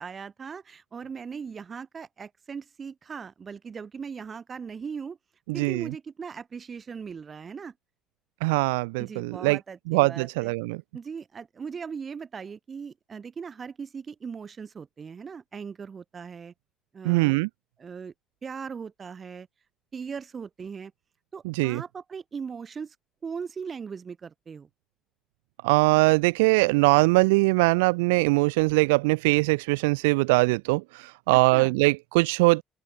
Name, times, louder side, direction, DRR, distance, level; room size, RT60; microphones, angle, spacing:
voice 1, 0.0-5.2 5.5-7.7 9.0-10.5 10.9-16.5 16.9-17.4 17.8-18.1 18.4-19.5 19.9-20.9 21.3-23.0 23.2-24.7 31.5-31.7, right 6 dB, 40° right, 6.0 m, -39 dB
voice 2, 5.5-5.9 8.4-9.6 9.9-10.8 17.0-17.5 21.4-21.8 25.6-32.6, right 26 dB, 85° right, 0.4 m, -22 dB
open air
hypercardioid pair, 70°, 0 cm